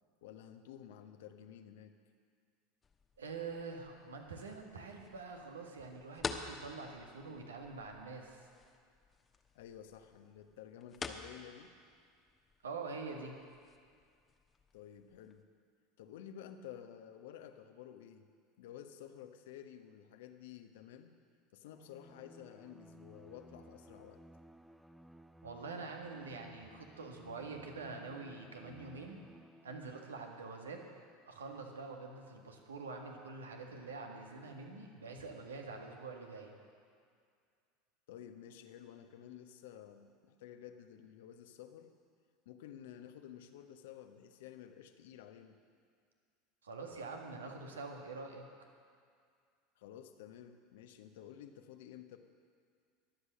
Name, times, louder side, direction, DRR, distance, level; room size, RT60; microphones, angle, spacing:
voice 1, 0.2-2.0 9.5-11.7 14.7-15.4 16.0-18.3 18.6-21.1 21.5-24.2 38.1-41.9 42.4-45.6 49.8-52.2, left 10 dB, 60° left, 7 dB, 1.0 m, -52 dB
sound 1, 2.8-15.4, left 4 dB, 25° left, 1.1 m, -50 dB
voice 2, 3.2-8.5 12.6-13.3 25.4-29.2 29.6-30.8 31.3-36.5 46.6-48.5, right 4 dB, 75° right, 2 dB, 1.7 m, -45 dB
Bowed string instrument, 21.7-30.2, right 1 dB, 5° right, 0.6 m, -58 dB
22.0 x 8.1 x 6.5 m, 2.2 s
figure-of-eight pair, 75°, 0 cm